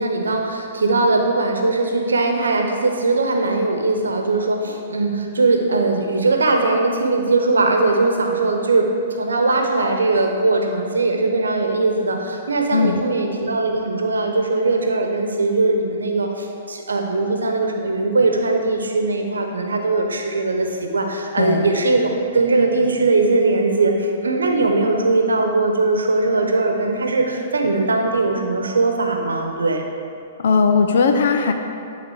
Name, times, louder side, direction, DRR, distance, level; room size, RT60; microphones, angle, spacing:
voice 1, 0.0-29.8, right 3 dB, 90° right, 3 dB, 1.0 m, -20 dB
voice 2, 12.7-13.0 21.4-21.7 30.4-31.5, left 5 dB, 70° left, 5 dB, 0.8 m, -17 dB
11.5 x 3.8 x 4.8 m, 2.5 s
hypercardioid pair, 125°, 0 cm